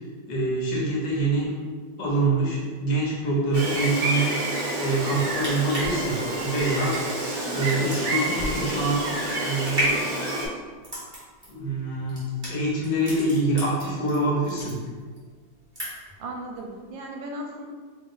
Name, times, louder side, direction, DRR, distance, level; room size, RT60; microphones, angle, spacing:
voice 1, 0.3-1.5 2.0-4.3 4.8-7.0 7.5-10.1 11.5-12.2 12.5-14.8, right 2 dB, 70° left, -4 dB, 1.5 m, -25 dB
Gull seagull, 3.5-10.5, right 1 dB, 60° right, 1.1 m, -28 dB
sound 1, 5.4-14.2 14.4-15.2 15.5-16.2 16.5-16.7, equal, 15° right, 1.1 m, -33 dB
voice 2, 7.5-7.8 16.2-17.7, right 1 dB, 80° right, 1 dB, 1.3 m, -37 dB
3.4 x 3.0 x 3.8 m, 1.5 s
omnidirectional pair, 2.1 m